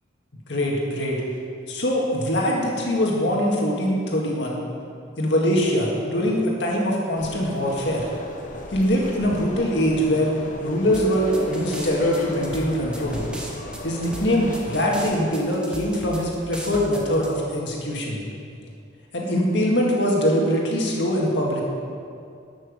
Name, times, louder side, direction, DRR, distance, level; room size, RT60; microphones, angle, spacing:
voice 1, 0.5-1.2 1.7-4.6 5.2-8.1 8.7-10.3 10.6-13.3 13.8-18.2 19.1-21.6, equal, 65° left, -2 dB, 1.9 m, -23 dB
sound 1, 7.2-15.4, left 1 dB, 45° left, 1.1 m, -36 dB
sound 2, 10.9-17.3, right 1 dB, 5° right, 1.1 m, -37 dB
12.0 x 6.2 x 6.6 m, 2.4 s
head